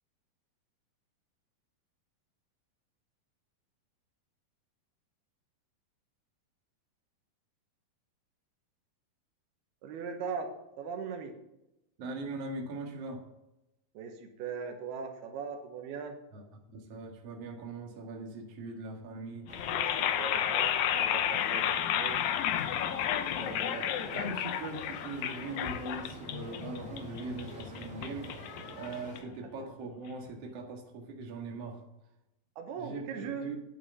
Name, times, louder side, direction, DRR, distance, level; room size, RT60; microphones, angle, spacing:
voice 1, 9.8-10.5 10.8-11.3 13.9-16.2 19.7-22.2 32.6-33.5, right 5 dB, 85° right, 5 dB, 3.2 m, -39 dB
voice 2, 12.0-13.2 16.3-19.5 23.4-28.3 28.7-31.8 32.8-33.6, right 3 dB, 50° right, 1 dB, 2.4 m, -41 dB
sound 1, 19.5-29.5, left 10 dB, 80° left, 1.7 m, -32 dB
sound 2, 19.5-29.2, right 1 dB, 25° right, 2.4 m, -48 dB
11.0 x 8.5 x 5.5 m, 0.90 s
omnidirectional pair, 4.4 m